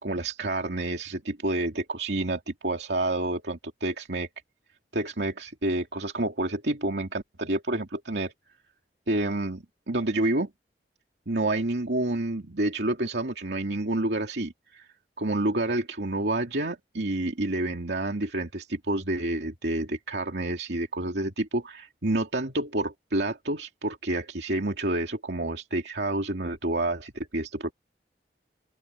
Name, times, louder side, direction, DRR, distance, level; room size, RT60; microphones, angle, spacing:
voice 1, 0.0-4.3 4.9-8.3 9.1-10.5 11.3-14.9 15.2-27.7, right 2 dB, 75° right, 2.6 m, -29 dB
open air
head